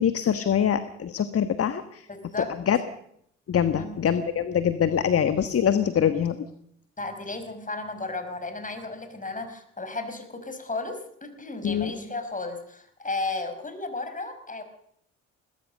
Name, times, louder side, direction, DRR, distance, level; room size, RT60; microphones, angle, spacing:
voice 1, 0.0-2.0 2.4-2.8 3.5-6.4 11.6-11.9, left 8 dB, 40° left, 11 dB, 1.5 m, -24 dB
voice 2, 2.1-2.5 3.8-3.9 7.0-14.6, left 3 dB, 20° left, 8 dB, 5.2 m, -34 dB
21.5 x 19.0 x 6.7 m, 0.71 s
figure-of-eight pair, 50°, 37 cm